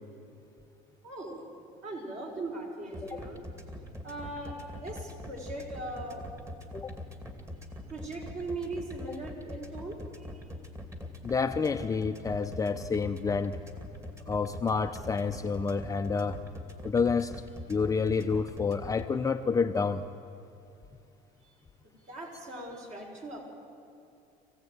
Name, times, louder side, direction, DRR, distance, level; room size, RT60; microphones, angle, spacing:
voice 1, 1.0-1.4 1.8-3.5 4.0-6.2 7.9-10.0 21.4-21.5 21.8-23.5, right 2 dB, 40° right, 0 dB, 5.8 m, -39 dB
sound 1, 2.9-19.1, left 1 dB, 15° right, 2.6 m, -42 dB
voice 2, 11.2-13.6 14.3-16.4 16.8-17.3 17.7-20.0, left 5 dB, 20° left, 6 dB, 0.7 m, -29 dB
24.0 x 16.0 x 9.4 m, 2.7 s
cardioid pair, 120°, 18 cm